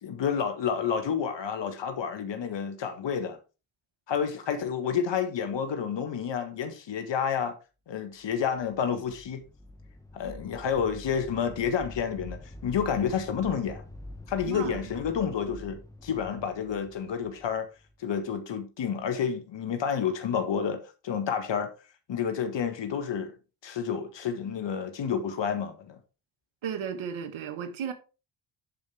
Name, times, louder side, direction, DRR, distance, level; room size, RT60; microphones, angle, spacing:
voice 1, 0.0-3.4 4.1-7.6 7.9-9.4 10.1-13.8 14.3-17.7 18.0-21.7 22.1-23.3 23.6-26.0, left 7 dB, 60° left, 1.6 m, -30 dB
sound 1, 9.0-18.2, left 1 dB, 5° left, 1.4 m, -46 dB
voice 2, 14.5-14.8 26.6-27.9, right 8 dB, 70° right, 1.6 m, -34 dB
11.5 x 5.1 x 3.4 m
supercardioid pair, 50°, 49 cm